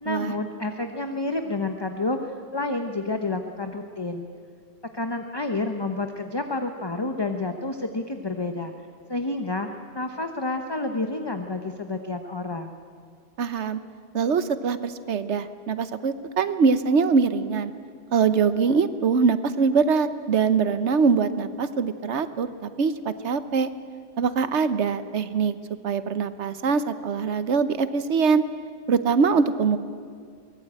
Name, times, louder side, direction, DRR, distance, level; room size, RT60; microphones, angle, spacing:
voice 1, 0.0-4.3 4.9-8.7 9.1-9.7 9.9-12.7, left 2 dB, 20° left, 6 dB, 1.0 m, -29 dB
voice 2, 13.4-13.8 14.1-17.7 18.1-23.7 24.2-25.6 25.8-28.4 28.9-29.8, right 5 dB, 70° right, 12 dB, 1.3 m, -23 dB
23.5 x 19.0 x 8.8 m, 2.1 s
omnidirectional pair, 1.2 m